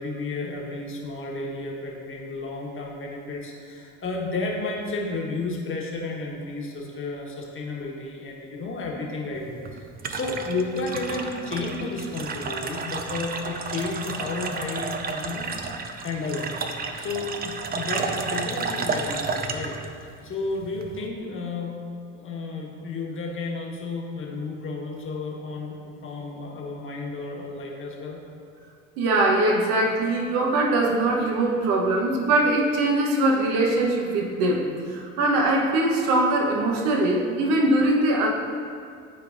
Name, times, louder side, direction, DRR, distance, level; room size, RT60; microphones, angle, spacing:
voice 1, 0.0-15.5 16.0-16.6 17.0-19.8 20.2-21.7 22.1-28.2, left 3 dB, 30° left, -1 dB, 1.5 m, -32 dB
sound 1, 9.4-21.1, right 4 dB, 25° right, 0.5 m, -32 dB
voice 2, 29.0-38.3, right 2 dB, 60° right, 0 dB, 1.2 m, -22 dB
12.0 x 4.6 x 2.6 m, 2.3 s
hypercardioid pair, 70°, 38 cm